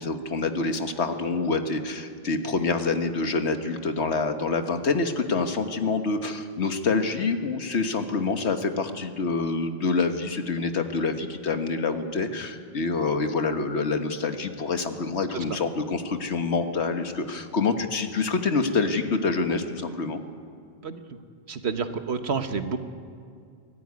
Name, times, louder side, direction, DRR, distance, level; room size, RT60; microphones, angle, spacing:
voice 1, 0.0-20.2, left 4 dB, 85° left, 7 dB, 1.6 m, -26 dB
voice 2, 21.5-22.8, right 5 dB, 75° right, 8 dB, 1.5 m, -29 dB
23.5 x 14.5 x 9.6 m, 2.3 s
omnidirectional pair, 1.1 m